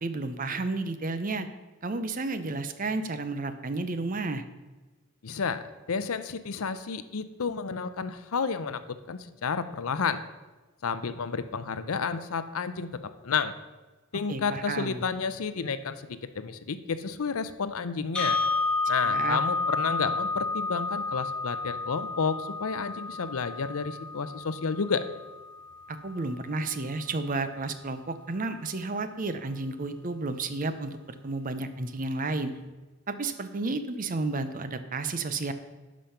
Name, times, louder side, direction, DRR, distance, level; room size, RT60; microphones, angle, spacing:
voice 1, 0.0-1.5 1.8-4.4 14.3-15.0 19.0-19.4 25.9-32.5 33.1-35.5, right 3 dB, 40° right, 10 dB, 0.6 m, -32 dB
voice 2, 5.2-5.6 5.9-8.8 9.1-10.2 10.8-13.5 14.1-18.4 18.9-25.1, left 5 dB, 75° left, 12 dB, 0.6 m, -31 dB
sound 1, 18.2-26.2, left 3 dB, 5° left, 1.6 m, -31 dB
11.5 x 5.1 x 5.7 m, 1.2 s
head